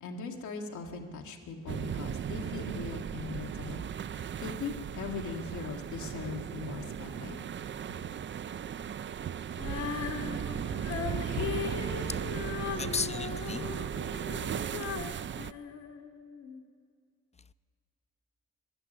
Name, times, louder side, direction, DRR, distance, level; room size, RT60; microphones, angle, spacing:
voice 1, 0.0-3.8 4.4-7.4, left 5 dB, 90° left, 1.6 m, -40 dB
sound 1, 1.7-15.5, right 9 dB, 40° right, 0.4 m, -36 dB
Female singing, 9.6-16.6, left 7 dB, 75° left, 1.4 m, -38 dB
voice 2, 12.0-12.3 12.8-13.7, left 5 dB, 25° left, 0.5 m, -35 dB
12.5 x 11.0 x 9.9 m
supercardioid pair, 55°, 29 cm